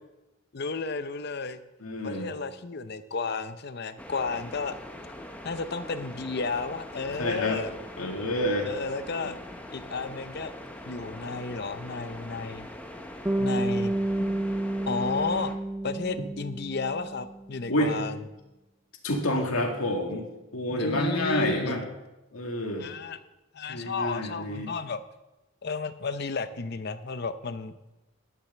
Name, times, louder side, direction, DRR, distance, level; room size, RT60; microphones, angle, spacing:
voice 1, 0.5-1.6 2.0-4.8 5.4-7.8 8.6-9.4 9.7-10.5 10.9-12.7 13.4-13.9 14.9-15.5 15.8-18.1 20.7-21.8 22.8-23.2 23.5-25.0 25.6-27.8, left 4 dB, 50° left, 12 dB, 0.6 m, -32 dB
voice 2, 1.8-2.3 7.1-7.6 8.0-8.7 13.4-13.5 14.2-14.3 16.2-16.3 17.7-18.0 19.0-20.3 20.5-21.8 22.3-22.9 23.7-24.7, left 1 dB, 85° left, 2 dB, 2.1 m, -28 dB
sound 1, 4.0-15.5, left 1 dB, 5° left, 0.9 m, -42 dB
Bass guitar, 13.2-17.5, right 1 dB, 10° right, 0.3 m, -30 dB
11.0 x 7.3 x 7.0 m, 1.0 s
head